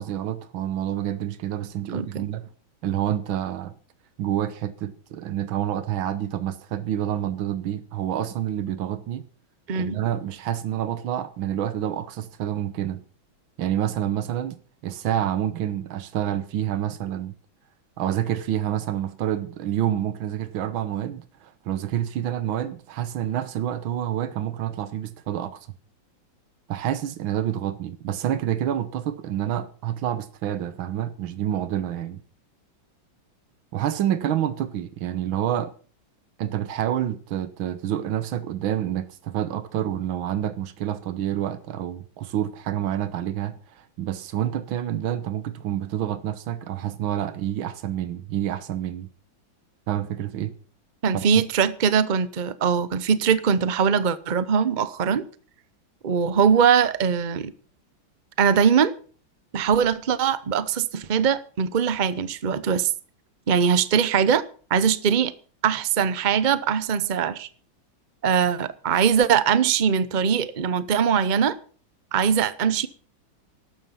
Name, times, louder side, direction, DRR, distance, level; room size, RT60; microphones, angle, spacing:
voice 1, 0.0-2.5 2.8-3.8 4.2-9.3 9.8-13.0 13.6-17.4 18.0-25.6 26.7-32.2 33.7-35.7 36.4-49.1 49.9-50.6 51.1-51.3, right 11 dB, 85° right, 1.8 m, -28 dB
voice 2, 1.9-2.3 9.7-10.0 51.0-55.2 56.0-57.5 58.4-58.9 59.5-62.9 63.5-64.4 64.7-65.3 65.6-67.5 68.2-71.6 72.1-72.9, right 7 dB, 65° right, 0.4 m, -21 dB
14.0 x 12.5 x 5.6 m
omnidirectional pair, 2.1 m